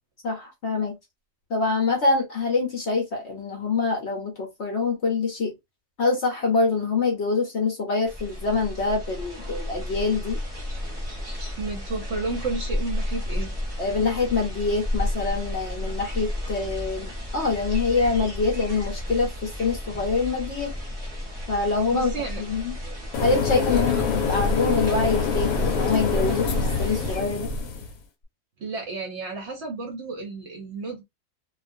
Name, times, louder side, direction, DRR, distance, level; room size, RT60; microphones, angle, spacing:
voice 1, 0.2-1.0 1.5-5.5 6.0-10.4 13.8-20.7 21.5-22.7 23.2-24.0 24.3-26.5 26.8-27.5, left 4 dB, 55° left, 0.9 m, -25 dB
sound 1, 8.1-27.2, left 1 dB, 30° right, 0.8 m, -32 dB
voice 2, 11.6-13.5 21.6-22.4 23.7-24.4 28.6-31.0, right 3 dB, 55° right, 0.8 m, -32 dB
sound 2, 23.1-27.9, left 5 dB, 75° left, 1.2 m, -25 dB
2.5 x 2.3 x 2.5 m
omnidirectional pair, 1.7 m